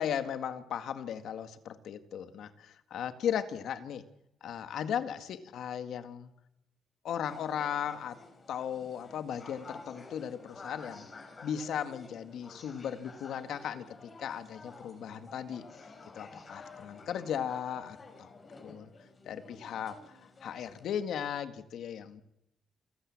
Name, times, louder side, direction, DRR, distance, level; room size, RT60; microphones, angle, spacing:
voice 1, 0.0-4.0 4.4-6.3 7.0-8.2 8.5-11.1 11.4-15.6 16.2-18.3 18.6-18.9 19.3-20.0 20.4-22.2, left 9 dB, 80° left, 10 dB, 1.8 m, -36 dB
sound 1, 7.2-21.0, left 3 dB, 40° left, 4.7 m, -51 dB
28.0 x 12.5 x 8.7 m, 0.89 s
cardioid pair, 90°, 0 cm